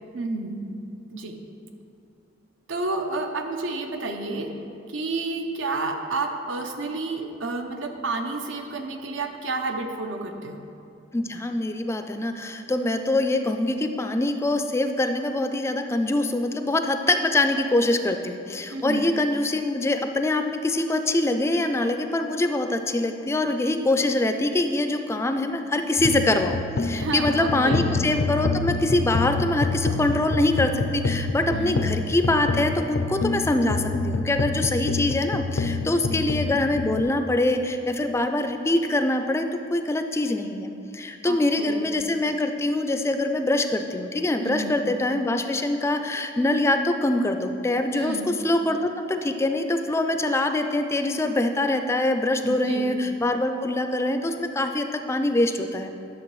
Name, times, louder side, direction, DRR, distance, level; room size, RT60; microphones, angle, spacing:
voice 1, 0.1-0.6 1.1-1.4 2.7-4.5 4.9-10.6 18.7-19.1 26.9-28.0 31.5-31.8 35.9-36.3 41.2-41.9 44.4-44.8 47.9-48.3 52.5-52.9, right 3 dB, 85° right, 4 dB, 0.7 m, -30 dB
voice 2, 11.1-39.4 39.7-55.9, left 2 dB, 15° left, 7 dB, 0.3 m, -24 dB
sound 1, 26.0-37.0, left 3 dB, 85° left, 0.4 m, -27 dB
11.0 x 6.6 x 3.1 m, 2.7 s
head